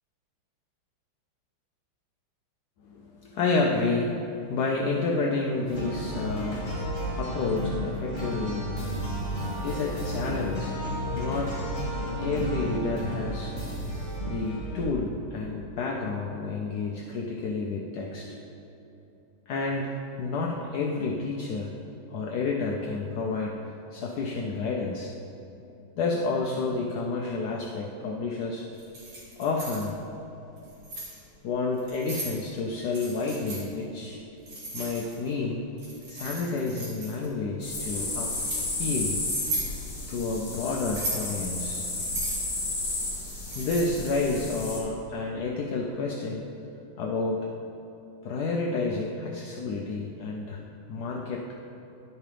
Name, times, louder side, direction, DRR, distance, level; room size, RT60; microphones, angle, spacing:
voice 1, 2.9-6.7 7.1-10.8 11.1-11.6 12.2-13.6 14.2-18.4 19.5-19.9 20.2-21.7 22.1-23.6 23.9-25.1 26.0-28.7 29.4-30.0 31.4-34.2 34.7-35.6 36.1-38.4 38.8-39.2 40.1-41.9 43.6-46.4 47.0-47.5 48.2-50.6 50.9-51.5, left 3 dB, 80° left, 0 dB, 0.9 m, -30 dB
sound 1, 5.6-14.8, equal, 15° left, 1.6 m, -32 dB
Keys jangling, 28.8-29.9 30.6-31.1 31.8-32.3 32.9-33.6 34.5-35.3 35.8-37.3 37.9-38.6 39.2-39.7 40.8-41.3 42.0-44.1, right 2 dB, 85° right, 3.0 m, -36 dB
sound 2, 37.6-44.8, left 2 dB, 45° left, 2.1 m, -33 dB
11.0 x 7.4 x 3.3 m, 2.9 s
omnidirectional pair, 2.3 m